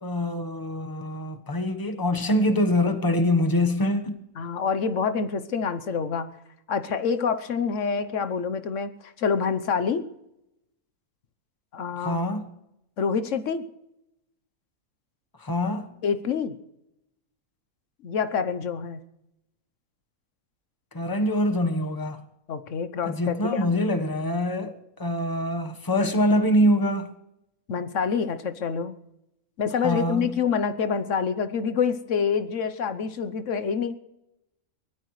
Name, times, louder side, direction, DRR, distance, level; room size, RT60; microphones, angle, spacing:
voice 1, 0.0-4.2 12.0-12.5 15.4-15.9 20.9-22.2 23.0-24.7 25.0-27.1 29.8-30.3, left 1 dB, 15° left, 1.0 m, -24 dB
voice 2, 4.4-6.3 6.7-10.1 11.7-12.2 13.0-13.6 16.0-16.6 18.0-19.0 22.5-23.7 27.7-28.9 29.6-34.0, left 6 dB, 60° left, 1.2 m, -27 dB
23.5 x 17.5 x 3.2 m
omnidirectional pair, 1.5 m